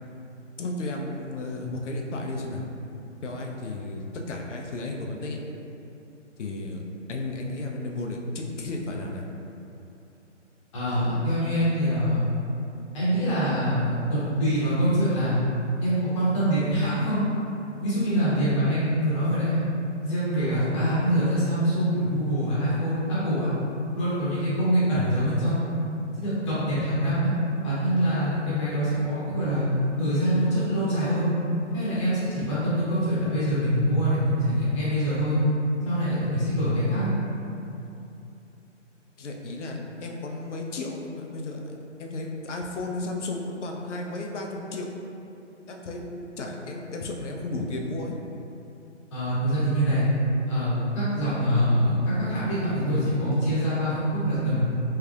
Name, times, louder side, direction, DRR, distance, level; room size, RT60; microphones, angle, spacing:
voice 1, 0.6-2.7 3.2-5.4 6.4-6.8 7.1-9.2 39.2-44.9 45.7-48.2, left 2 dB, 70° left, 1 dB, 0.6 m, -33 dB
voice 2, 10.7-12.2 12.9-15.4 15.8-17.3 17.8-19.6 20.0-23.5 23.9-25.6 26.2-27.3 27.6-29.6 30.0-31.3 31.7-35.4 35.8-37.1 49.1-50.1 50.5-54.6, equal, 25° left, -11 dB, 1.0 m, -24 dB
3.4 x 3.2 x 2.4 m, 2.8 s
hypercardioid pair, 150°, 37 cm